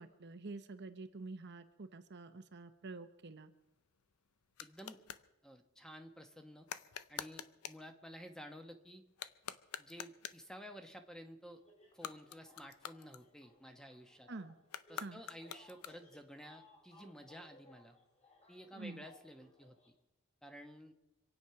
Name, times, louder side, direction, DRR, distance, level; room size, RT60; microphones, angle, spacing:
voice 1, 0.0-3.5 14.3-14.6 15.0-15.2 18.7-19.0, right 3 dB, 50° right, 9 dB, 0.9 m, -48 dB
sound 1, 3.5-5.3 6.6-7.9 9.1-10.5 11.9-13.7 14.6-16.3, left 9 dB, 85° left, 0.7 m, -48 dB
voice 2, 4.6-5.0 5.4-6.7 7.1-9.0 9.8-11.6 11.9-14.3 14.9-18.0 18.5-19.8 20.4-20.9, equal, 5° left, 6 dB, 1.1 m, -52 dB
sound 2, 11.5-19.9, left 1 dB, 30° left, 3.4 m, -64 dB
26.0 x 9.2 x 5.8 m, 0.91 s
head